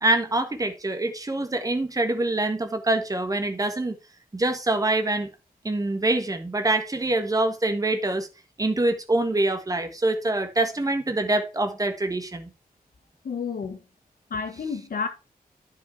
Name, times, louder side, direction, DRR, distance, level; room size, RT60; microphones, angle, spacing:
voice 1, 0.0-3.9 4.3-5.3 5.6-8.3 8.6-12.5, right 2 dB, 20° right, 1.5 m, -25 dB
voice 2, 13.2-13.8 14.3-15.1, left 5 dB, 65° left, 1.6 m, -30 dB
10.0 x 5.1 x 4.6 m
wide cardioid pair, 165°, 16 cm